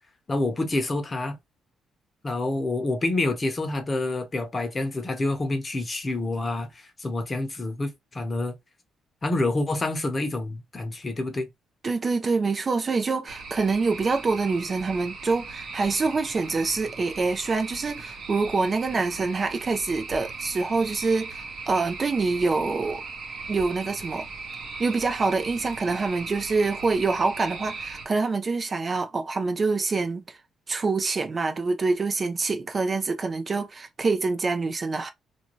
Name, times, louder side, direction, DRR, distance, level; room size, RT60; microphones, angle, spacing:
voice 1, 0.3-1.4 2.2-8.5 9.2-11.5, left 2 dB, 30° left, 0.8 m, -27 dB
voice 2, 11.8-23.0 23.5-24.3 24.8-30.4 30.7-35.1, right 4 dB, 35° right, 0.4 m, -26 dB
sound 1, 13.3-28.1, right 4 dB, 55° right, 0.8 m, -38 dB
2.6 x 2.2 x 3.0 m
cardioid pair, 90°, 0 cm